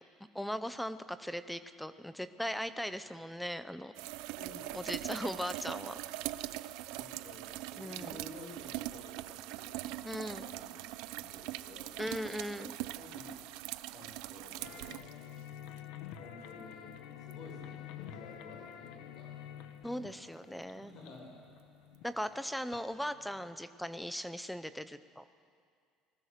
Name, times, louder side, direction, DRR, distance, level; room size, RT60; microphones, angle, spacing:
voice 1, 0.3-3.9 4.7-6.0 7.8-8.2 10.0-10.5 12.0-12.7 19.8-20.9 22.0-25.2, equal, ahead, 12 dB, 0.7 m, -38 dB
sound 1, 3.9-15.8 17.3-17.4 22.2-22.3, right 16 dB, 75° right, 0.7 m, -42 dB
voice 2, 4.4-5.1 6.9-12.2 12.7-13.3 13.9-15.2 16.2-19.4 20.7-21.5, left 2 dB, 40° left, 0 dB, 5.7 m, -53 dB
sound 2, 14.6-23.5, left 10 dB, 80° left, 1.6 m, -49 dB
30.0 x 20.5 x 6.7 m, 2.2 s
cardioid pair, 180°, 0 cm